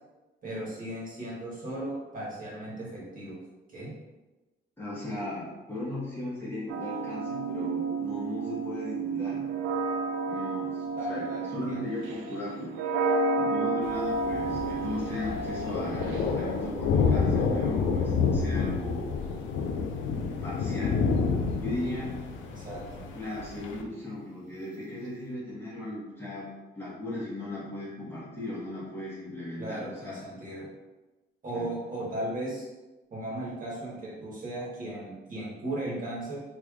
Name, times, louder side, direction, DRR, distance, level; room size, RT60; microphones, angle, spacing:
voice 1, 0.4-3.4 3.7-3.9 10.9-12.2 22.5-23.0 29.6-30.7 31.4-32.7 33.1-36.4, right 1 dB, 45° right, -6 dB, 1.4 m, -36 dB
voice 2, 4.8-9.5 10.3-12.8 13.4-19.1 20.4-21.1 21.6-22.3 23.1-26.5 26.8-30.2 31.5-31.7, left 1 dB, 10° left, -8 dB, 1.1 m, -37 dB
sound 1, 6.7-18.7 19.6-20.9, right 3 dB, 85° right, 0.4 m, -32 dB
Thunder, 13.8-23.8, left 5 dB, 75° left, 0.4 m, -29 dB
3.2 x 3.1 x 2.4 m, 1.1 s
cardioid pair, 90°, 20 cm